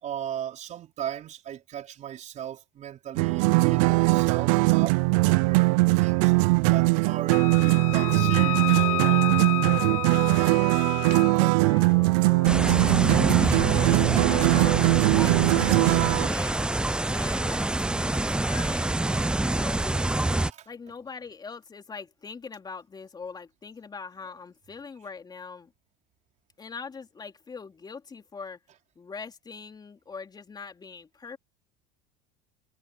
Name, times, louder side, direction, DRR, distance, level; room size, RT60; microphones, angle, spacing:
voice 1, 0.0-9.3 20.5-20.7, right 10 dB, 40° right, 4.5 m, -37 dB
sound 1, 3.2-16.3, right 27 dB, 70° right, 0.4 m, -21 dB
Wind instrument woodwind instrument, 7.3-11.3, left 17 dB, 80° left, 1.2 m, -31 dB
voice 2, 11.3-16.6 17.0-20.1 20.7-25.7 26.6-28.6 29.0-31.4, left 5 dB, 25° left, 3.7 m, -42 dB
sound 2, 12.5-20.5, right 2 dB, 5° right, 0.5 m, -26 dB
supercardioid pair, 100°, 18 cm